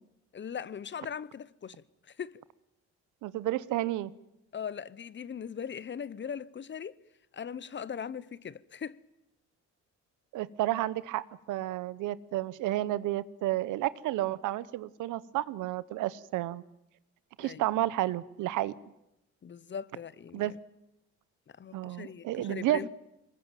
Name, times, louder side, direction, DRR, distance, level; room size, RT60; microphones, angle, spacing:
voice 1, 0.3-2.4 4.5-7.0 7.3-9.0 17.4-17.6 19.4-20.5 21.5-22.9, left 7 dB, 40° left, 0.9 m, -40 dB
voice 2, 3.2-4.1 10.3-16.6 17.4-18.7 20.3-20.5 21.7-22.9, right 15 dB, 90° right, 0.9 m, -31 dB
24.0 x 20.5 x 9.1 m
cardioid pair, 90°, 30 cm